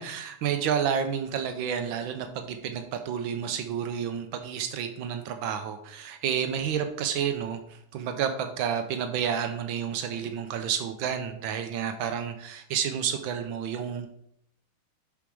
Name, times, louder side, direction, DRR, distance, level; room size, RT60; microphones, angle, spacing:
voice 1, 0.0-14.1, right 8 dB, 80° right, 7 dB, 1.4 m, -30 dB
7.2 x 4.9 x 4.6 m, 0.72 s
omnidirectional pair, 2.2 m